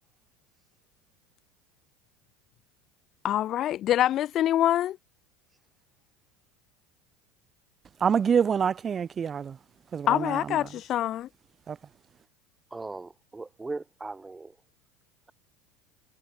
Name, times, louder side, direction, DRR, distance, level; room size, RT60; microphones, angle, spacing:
voice 1, 3.2-5.0 10.1-11.3, left 12 dB, 45° left, 1.0 m, -25 dB
voice 2, 8.0-9.6 9.9-10.8 11.7-11.8, right 7 dB, 30° right, 1.9 m, -26 dB
voice 3, 12.7-14.6, right 3 dB, 15° right, 7.2 m, -38 dB
hypercardioid pair, 80°, 0 cm